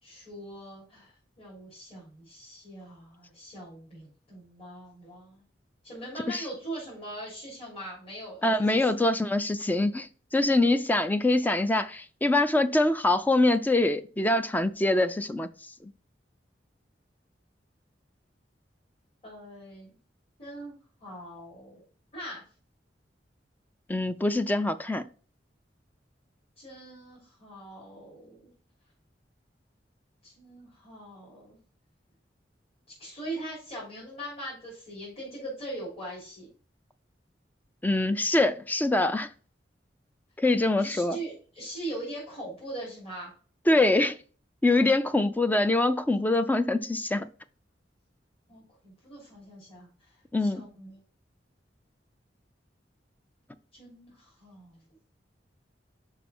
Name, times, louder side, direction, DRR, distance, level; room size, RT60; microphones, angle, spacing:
voice 1, 0.0-5.4 5.8-9.0 19.2-20.0 20.4-20.7 21.0-21.8 22.1-22.4 26.6-28.5 30.2-31.6 33.0-36.5 40.8-43.3 48.5-50.1 50.4-51.0 53.7-54.8, right 1 dB, 35° left, 3.6 m, -41 dB
voice 2, 8.4-15.5 15.8-15.9 23.9-25.0 37.8-39.3 40.4-41.2 43.7-44.2 44.6-47.3 50.3-50.6, left 2 dB, 10° left, 0.4 m, -24 dB
5.7 x 5.4 x 4.2 m
head